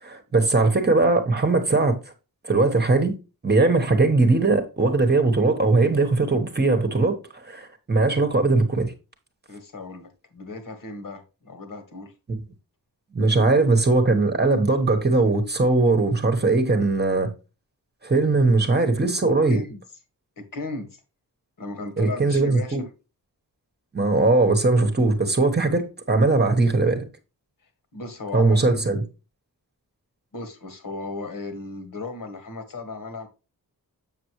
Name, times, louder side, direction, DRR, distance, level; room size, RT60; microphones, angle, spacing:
voice 1, 0.0-2.0 2.4-3.2 3.4-8.9 13.1-17.3 18.0-19.6 22.0-22.8 23.9-27.0 28.3-29.0, right 3 dB, 25° right, 1.1 m, -20 dB
voice 2, 9.5-12.1 13.4-13.6 18.4-18.6 19.5-19.8 20.4-21.0 21.6-22.9 27.9-28.8 30.3-33.3, left 3 dB, 60° left, 1.7 m, -36 dB
7.4 x 6.8 x 3.0 m
wide cardioid pair, 180°, 37 cm